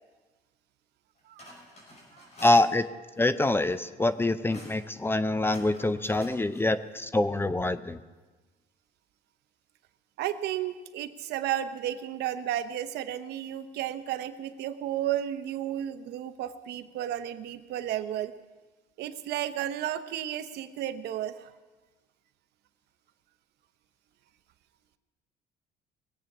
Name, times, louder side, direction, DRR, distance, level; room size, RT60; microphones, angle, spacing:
sound 1, 1.2-2.7 3.2-3.8 4.1-4.8 5.4-6.7, left 1 dB, 40° left, 5.6 m, -50 dB
voice 1, 2.4-2.8 3.2-8.0, left 2 dB, 15° left, 13 dB, 0.6 m, -25 dB
voice 2, 10.2-18.3 19.0-21.6, right 11 dB, 75° right, 10 dB, 0.9 m, -33 dB
20.5 x 8.5 x 6.1 m, 1.2 s
cardioid pair, 110°, 17 cm